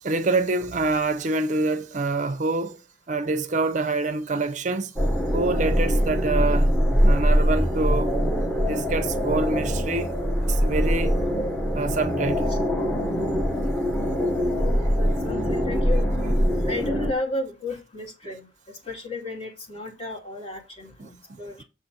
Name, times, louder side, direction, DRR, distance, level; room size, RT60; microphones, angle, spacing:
voice 1, 0.0-2.8 3.1-4.9 5.3-6.7 7.0-8.1 8.6-10.1 10.4-11.2 11.7-12.5 15.0-15.3 21.0-21.6, right 3 dB, 40° right, 0.5 m, -26 dB
sound 1, 5.0-17.1, equal, 10° left, 1.2 m, -23 dB
voice 2, 14.5-16.1 16.7-18.5 18.9-21.6, left 2 dB, 30° left, 2.4 m, -33 dB
7.0 x 4.0 x 5.9 m
head